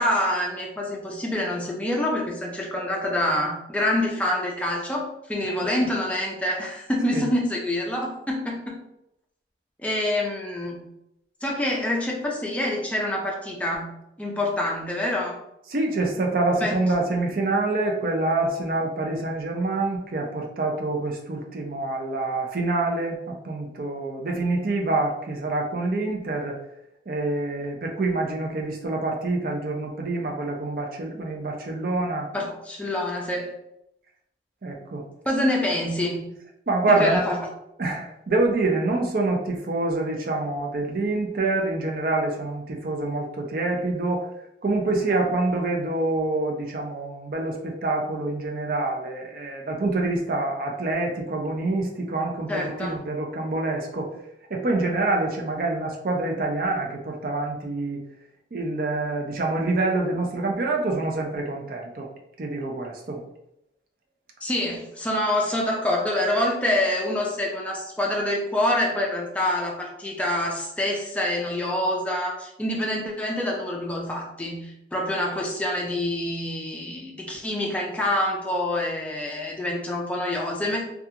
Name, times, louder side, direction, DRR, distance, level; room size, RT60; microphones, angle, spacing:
voice 1, 0.0-8.8 9.8-10.9 11.4-15.4 16.6-16.8 32.3-33.5 35.3-36.4 36.9-37.4 52.5-53.1 64.4-80.8, left 1 dB, 10° left, -2 dB, 0.4 m, -26 dB
voice 2, 15.7-26.6 27.1-32.3 34.6-35.1 36.7-37.2 37.8-44.3 44.6-54.1 54.5-58.0 58.5-62.1 62.4-63.2, right 2 dB, 50° right, 0 dB, 0.5 m, -26 dB
2.4 x 2.3 x 2.7 m, 0.82 s
head